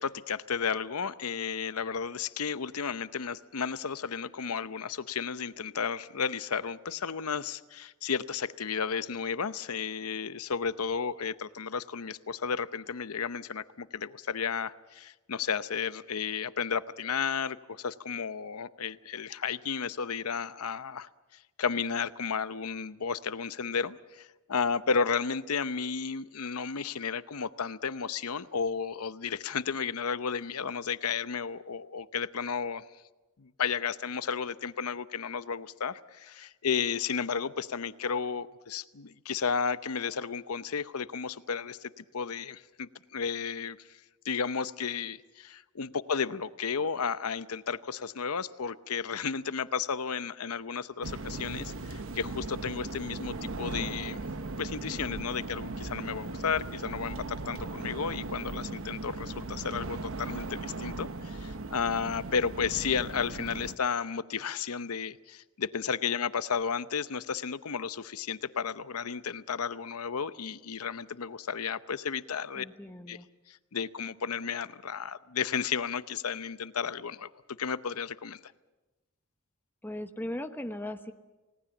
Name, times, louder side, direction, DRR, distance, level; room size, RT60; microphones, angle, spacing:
voice 1, 0.0-21.1 21.6-32.8 33.4-43.8 44.2-54.2 54.6-72.7 73.1-73.2 73.5-77.3 77.6-78.5, left 6 dB, 85° left, 14 dB, 0.8 m, -33 dB
sound 1, 51.0-63.7, right 3 dB, 65° right, 1.0 m, -38 dB
voice 2, 72.6-73.3 79.8-81.1, left 1 dB, 10° left, 7 dB, 1.0 m, -38 dB
29.5 x 18.0 x 7.2 m, 1.1 s
head